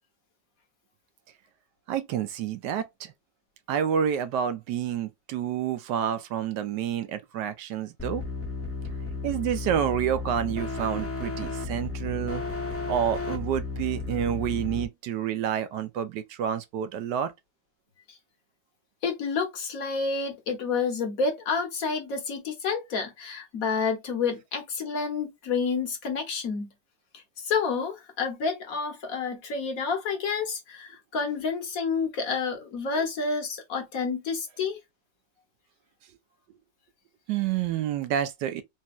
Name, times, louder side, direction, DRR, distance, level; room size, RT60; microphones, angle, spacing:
voice 1, 1.9-3.1 3.7-8.2 9.2-12.4 12.9-17.3 37.3-38.6, right 9 dB, 75° right, 1.2 m, -29 dB
sound 1, 8.0-14.9, left 3 dB, 10° left, 0.7 m, -33 dB
voice 2, 19.0-26.7 27.4-34.8, left 5 dB, 55° left, 1.3 m, -29 dB
4.2 x 2.2 x 2.3 m
omnidirectional pair, 1.9 m